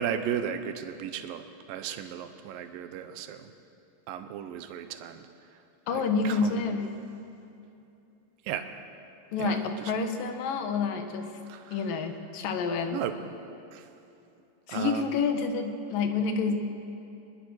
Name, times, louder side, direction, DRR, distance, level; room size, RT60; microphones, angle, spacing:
voice 1, 0.0-3.5 4.1-5.3 5.9-6.8 8.4-8.7 9.4-9.9 11.5-11.9 12.9-13.2 13.7-13.9 14.7-15.1, right 9 dB, 85° right, 8 dB, 2.6 m, -35 dB
voice 2, 5.9-7.0 9.3-11.3 11.7-13.0 14.7-16.6, left 4 dB, 80° left, 6 dB, 3.0 m, -28 dB
23.0 x 21.0 x 6.4 m, 2.7 s
omnidirectional pair, 4.0 m